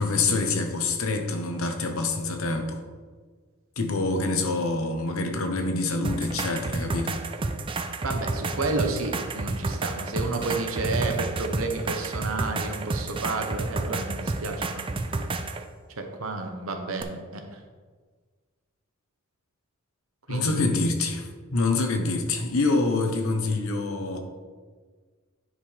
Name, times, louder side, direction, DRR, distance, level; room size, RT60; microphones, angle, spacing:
voice 1, 0.0-2.8 3.8-7.2 20.3-24.2, left 3 dB, 80° left, 5 dB, 1.0 m, -26 dB
sound 1, 6.0-15.6 17.0-17.1, right 3 dB, 25° right, 0.4 m, -30 dB
voice 2, 8.0-14.8 16.0-17.6 20.3-20.8, right 3 dB, 75° right, 4 dB, 1.0 m, -31 dB
9.8 x 5.4 x 3.4 m, 1.5 s
head